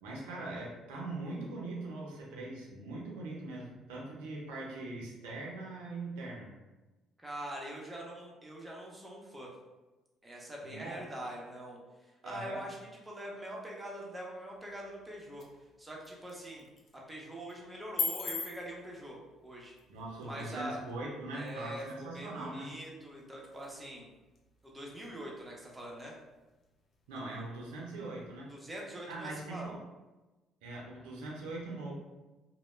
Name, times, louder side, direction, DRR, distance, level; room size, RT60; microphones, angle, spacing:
voice 1, 0.0-6.5 10.6-11.0 12.2-12.7 19.9-22.7 27.1-28.5 29.1-29.8 30.6-31.9, right 2 dB, 90° right, -3 dB, 0.6 m, -41 dB
voice 2, 7.2-9.5 10.2-12.8 13.0-15.4 15.8-16.7 17.1-19.8 20.3-20.8 21.3-24.1 24.7-26.1 28.5-29.7, right 1 dB, 15° right, -3 dB, 0.8 m, -43 dB
sound 1, 14.5-28.5, left 4 dB, 55° left, 0.5 m, -46 dB
2.1 x 2.1 x 3.1 m, 1.1 s
supercardioid pair, 70°, 0 cm